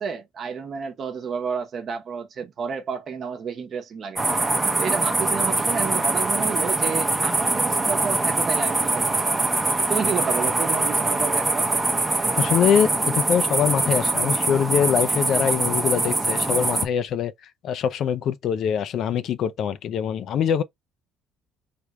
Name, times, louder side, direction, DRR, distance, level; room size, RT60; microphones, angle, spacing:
voice 1, 0.0-4.2 4.8-9.2 9.9-11.7, right 6 dB, 45° right, 0.9 m, -30 dB
sound 1, 4.2-16.8, right 2 dB, 15° right, 0.7 m, -23 dB
voice 2, 12.4-17.3 17.6-20.6, left 8 dB, 60° left, 0.4 m, -23 dB
3.4 x 2.3 x 2.9 m
cardioid pair, 115°, 0 cm